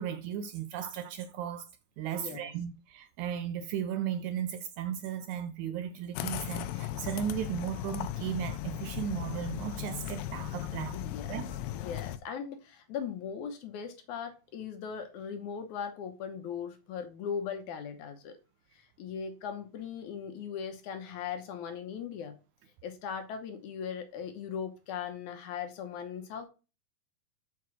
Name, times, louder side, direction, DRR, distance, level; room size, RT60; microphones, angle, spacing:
voice 1, 0.0-1.7 2.0-11.0 11.3-11.5, right 9 dB, 75° right, 1.8 m, -36 dB
voice 2, 2.1-2.5 10.9-11.4 11.8-18.4 18.7-22.3 22.8-26.5, left 7 dB, 70° left, 2.1 m, -39 dB
sound 1, 6.2-12.2, left 12 dB, 85° left, 2.4 m, -37 dB
5.9 x 4.7 x 6.2 m
omnidirectional pair, 4.0 m